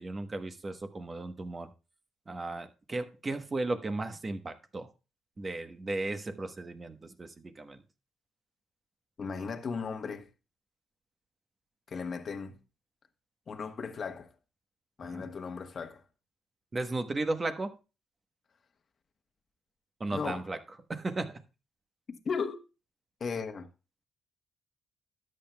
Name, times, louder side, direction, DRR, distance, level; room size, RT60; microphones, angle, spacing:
voice 1, 0.0-1.7 2.3-4.9 5.4-7.8 15.0-15.3 16.7-17.7 20.0-20.6 20.9-21.4, right 2 dB, 30° right, 1.1 m, -35 dB
voice 2, 9.2-10.3 11.9-12.6 13.5-14.3 15.0-16.0 20.1-20.4 22.1-22.6 23.2-23.7, left 5 dB, 45° left, 1.1 m, -36 dB
13.0 x 8.8 x 2.2 m
cardioid pair, 90°, 0 cm